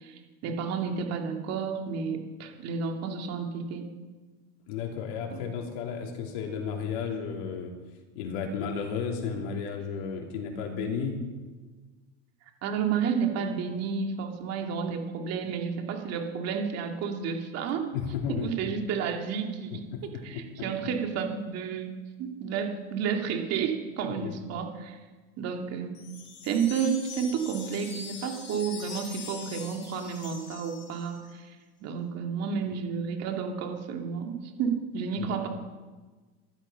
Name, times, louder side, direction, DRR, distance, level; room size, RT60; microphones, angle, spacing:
voice 1, 0.0-3.9 5.3-5.4 12.6-17.8 18.3-19.9 20.2-21.9 22.2-25.0 25.4-26.0 26.4-31.6 31.8-35.5, right 6 dB, 50° right, 3 dB, 2.6 m, -31 dB
voice 2, 4.7-7.7 8.1-11.2 17.9-18.5 20.1-20.6 24.0-24.3 35.2-35.4, left 6 dB, 70° left, 2 dB, 3.3 m, -33 dB
sound 1, 25.9-31.3, left 5 dB, 35° left, 4.6 m, -43 dB
14.5 x 12.0 x 5.7 m, 1.3 s
supercardioid pair, 115°, 31 cm